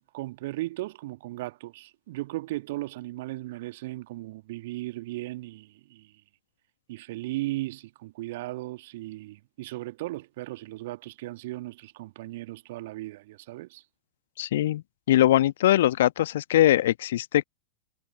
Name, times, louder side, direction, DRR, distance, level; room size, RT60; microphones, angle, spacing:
voice 1, 0.0-6.1 6.9-13.8, right 18 dB, 50° right, 1.9 m, -36 dB
voice 2, 14.4-14.8 15.1-17.4, left 13 dB, 60° left, 1.3 m, -21 dB
figure-of-eight pair, 90°, 0 cm